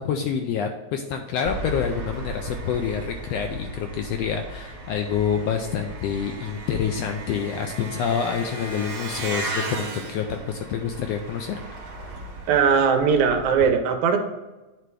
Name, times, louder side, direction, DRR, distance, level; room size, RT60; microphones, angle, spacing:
voice 1, 0.0-11.5, left 7 dB, 85° left, 4 dB, 1.4 m, -27 dB
Engine, 1.4-13.6, right 1 dB, 45° right, 2.6 m, -36 dB
voice 2, 12.5-14.2, right 6 dB, 80° right, 5 dB, 2.1 m, -19 dB
9.0 x 3.3 x 4.7 m, 1.1 s
omnidirectional pair, 3.4 m